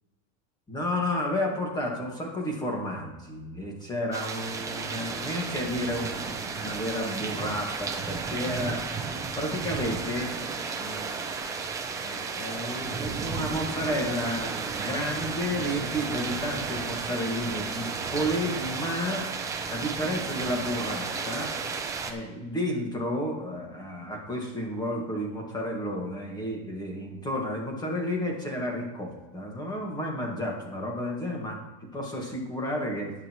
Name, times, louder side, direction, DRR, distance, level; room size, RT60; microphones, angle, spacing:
voice 1, 0.7-11.2 12.0-19.3 19.7-21.6 22.0-31.6 31.9-33.1, equal, 10° left, 0 dB, 1.7 m, -32 dB
sound 1, 4.1-22.1, right 5 dB, 10° right, 0.5 m, -33 dB
19.5 x 6.5 x 3.0 m, 1.1 s
supercardioid pair, 165°, 39 cm